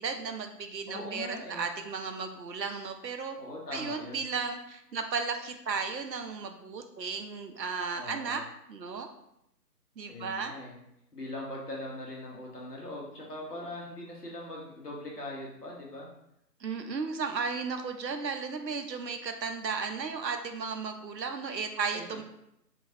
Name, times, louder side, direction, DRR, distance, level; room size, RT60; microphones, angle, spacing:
voice 1, 0.0-3.4 3.7-8.4 8.7-9.1 10.0-10.5 16.6-22.2, right 5 dB, 80° right, 6 dB, 0.7 m, -34 dB
voice 2, 0.8-1.7 3.4-4.2 7.9-8.4 10.1-10.8 11.1-16.1 21.9-22.2, left 1 dB, 70° left, -3 dB, 1.4 m, -41 dB
3.9 x 3.2 x 2.7 m, 0.81 s
figure-of-eight pair, 155°, 49 cm